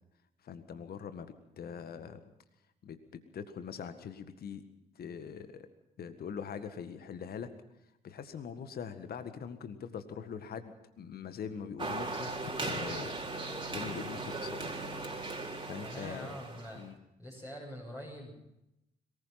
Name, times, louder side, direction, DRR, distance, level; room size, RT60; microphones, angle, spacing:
voice 1, 0.4-2.2 2.8-4.6 5.0-5.7 6.0-7.5 8.0-12.3 12.6-13.1 13.4-14.8 15.7-16.4 16.7-17.0, left 7 dB, 50° left, 10 dB, 1.7 m, -42 dB
sound 1, 11.8-16.8, right 2 dB, 25° right, 4.2 m, -38 dB
voice 2, 15.8-16.8 17.2-18.3, equal, 15° left, -3 dB, 7.2 m, -44 dB
22.5 x 19.5 x 5.9 m, 0.86 s
hypercardioid pair, 45°, 20 cm